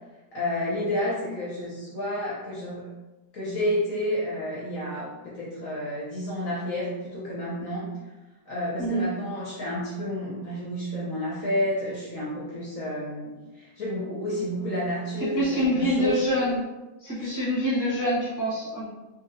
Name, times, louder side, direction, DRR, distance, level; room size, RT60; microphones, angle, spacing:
voice 1, 0.3-2.8 3.3-7.9 8.5-16.2 17.2-17.4, left 1 dB, 60° left, -7 dB, 1.0 m, -30 dB
voice 2, 15.2-16.6 17.0-18.9, equal, 15° right, -10 dB, 0.8 m, -26 dB
3.0 x 2.8 x 2.6 m, 1.1 s
omnidirectional pair, 1.9 m